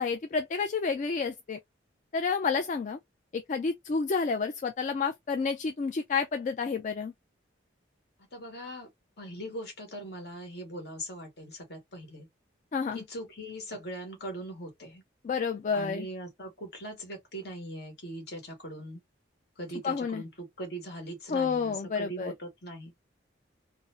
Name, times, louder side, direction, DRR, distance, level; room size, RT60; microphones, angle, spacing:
voice 1, 0.0-1.6 2.1-3.0 3.3-7.1 12.7-13.0 15.2-16.1 19.8-20.2 21.3-22.3, left 5 dB, 40° left, 0.3 m, -30 dB
voice 2, 8.3-8.9 9.2-12.3 12.9-15.0 15.7-19.0 19.6-22.9, right 1 dB, 60° left, 1.4 m, -40 dB
4.0 x 2.0 x 2.6 m
head